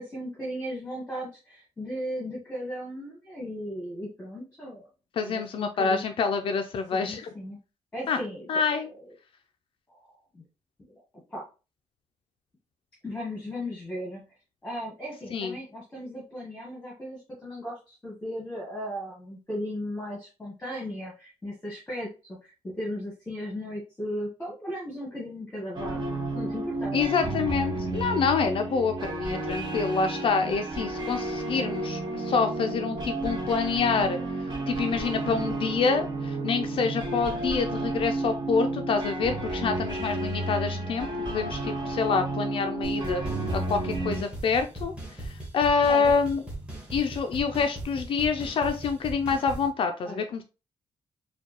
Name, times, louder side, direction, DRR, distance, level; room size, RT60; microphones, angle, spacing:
voice 1, 0.0-4.9 5.2-6.1 6.9-7.6 7.9-9.0 9.9-10.4 10.9-11.0 11.3-11.4 13.0-14.2 14.6-26.0 26.3-27.0 45.9-46.2 50.0-50.2, equal, 10° left, -4 dB, 1.1 m, -36 dB
voice 2, 5.2-7.3 8.1-8.2 8.5-8.9 15.3-15.6 26.9-41.1 41.3-43.2 43.5-46.4 46.9-50.4, left 5 dB, 50° left, 6 dB, 0.4 m, -27 dB
sound 1, 25.7-44.2, right 2 dB, 40° right, 1.1 m, -31 dB
sound 2, 42.8-49.7, right 1 dB, 10° right, 1.3 m, -38 dB
4.4 x 2.2 x 2.9 m, 0.31 s
cardioid pair, 170°, 12 cm